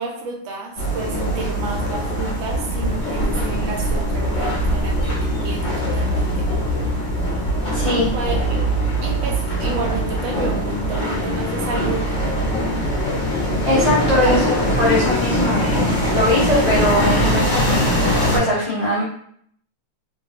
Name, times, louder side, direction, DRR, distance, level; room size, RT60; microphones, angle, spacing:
voice 1, 0.0-6.5 8.1-8.6 9.0-12.2 14.2-14.3, right 3 dB, 80° right, 1 dB, 1.3 m, -30 dB
sound 1, 0.8-18.4, equal, 45° left, 1.1 m, -21 dB
voice 2, 7.7-8.1 13.6-19.0, left 1 dB, 20° left, -9 dB, 1.0 m, -21 dB
3.3 x 2.2 x 2.7 m, 0.65 s
omnidirectional pair, 2.2 m